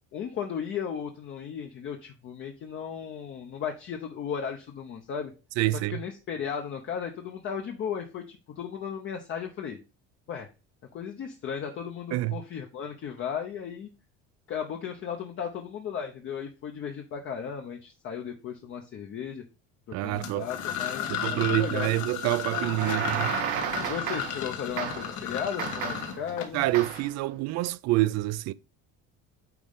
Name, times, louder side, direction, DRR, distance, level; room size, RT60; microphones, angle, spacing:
voice 1, 0.1-5.3 5.9-9.8 10.3-10.5 10.9-13.9 14.5-19.4 20.0-21.9 22.7-23.3 23.8-26.6, left 7 dB, 40° left, 0.9 m, -35 dB
voice 2, 5.6-6.0 12.1-12.4 19.9-20.5 21.1-23.4 26.5-28.5, right 18 dB, 60° right, 0.5 m, -27 dB
sound 1, 20.2-27.0, left 9 dB, 70° left, 1.5 m, -34 dB
sound 2, 22.5-24.5 24.8-25.2 25.6-26.2 26.7-27.1, right 8 dB, 85° right, 1.6 m, -32 dB
9.3 x 3.8 x 3.7 m
cardioid pair, 160°, 30 cm